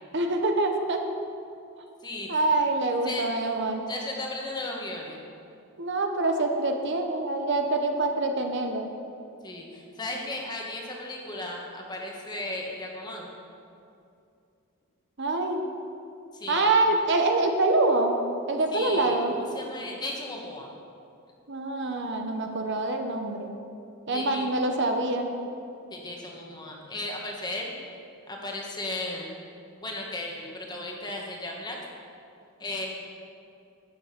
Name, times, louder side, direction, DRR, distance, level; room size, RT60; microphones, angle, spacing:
voice 1, 0.1-1.0 2.3-3.9 5.8-8.9 15.2-15.7 16.5-18.2 18.5-19.4 21.5-23.5 24.1-25.3, right 2 dB, 55° right, 4 dB, 1.0 m, -25 dB
voice 2, 2.0-2.4 3.0-3.5 3.9-5.2 9.4-13.3 16.3-16.7 18.7-20.7 24.1-24.5 25.9-27.8 28.3-29.3 29.8-31.8 32.6-32.9, left 2 dB, 20° left, -1 dB, 1.6 m, -35 dB
12.5 x 9.1 x 5.9 m, 2.6 s
head